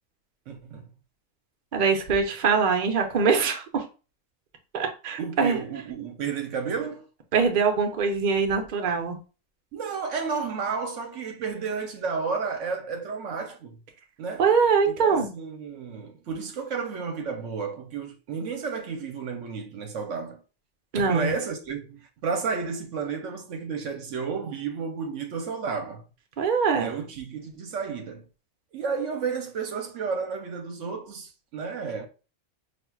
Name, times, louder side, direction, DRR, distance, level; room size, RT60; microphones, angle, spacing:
voice 1, 0.5-0.9 5.2-7.0 9.7-13.8 14.2-14.5 14.9-20.4 21.0-26.0 26.8-28.2 28.7-32.1, right 5 dB, 70° right, 1.0 m, -32 dB
voice 2, 1.7-3.8 4.7-5.6 7.3-9.2 14.4-15.3 20.9-21.3 26.4-26.9, right 5 dB, 45° right, 0.7 m, -23 dB
5.8 x 2.5 x 2.3 m
omnidirectional pair, 1.4 m